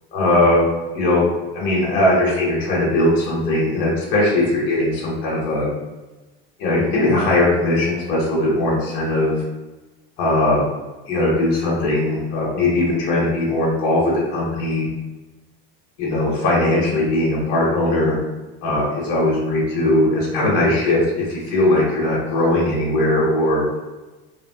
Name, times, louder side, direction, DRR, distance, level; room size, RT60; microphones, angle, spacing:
voice 1, 0.1-0.6 0.9-1.2 1.5-5.7 6.6-9.4 10.2-10.6 11.1-14.9 16.0-18.2 18.6-23.6, left 1 dB, 45° left, -5 dB, 0.8 m, -19 dB
2.8 x 2.2 x 2.6 m, 1.1 s
supercardioid pair, 145°, 30 cm